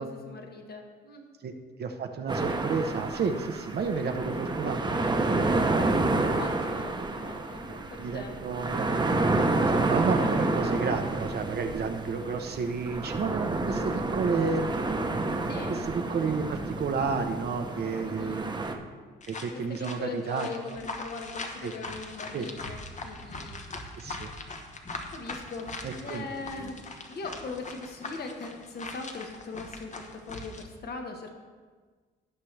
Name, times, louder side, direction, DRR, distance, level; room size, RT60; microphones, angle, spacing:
voice 1, 0.0-1.2 6.3-8.4 15.4-15.8 18.0-18.5 19.5-23.6 24.1-24.4 25.1-31.3, left 4 dB, 55° left, 3 dB, 1.5 m, -40 dB
voice 2, 1.8-5.9 8.0-14.7 15.9-18.7 19.3-20.8 21.6-21.7 22.3-22.5 24.0-24.3 25.8-26.3 26.5-26.7, right 5 dB, 55° right, 5 dB, 0.9 m, -32 dB
sound 1, 2.3-18.7, right 2 dB, 20° right, 1.0 m, -29 dB
sound 2, 19.2-30.6, left 3 dB, 35° left, 1.2 m, -41 dB
17.5 x 5.9 x 3.4 m, 1.5 s
cardioid pair, 90°, 20 cm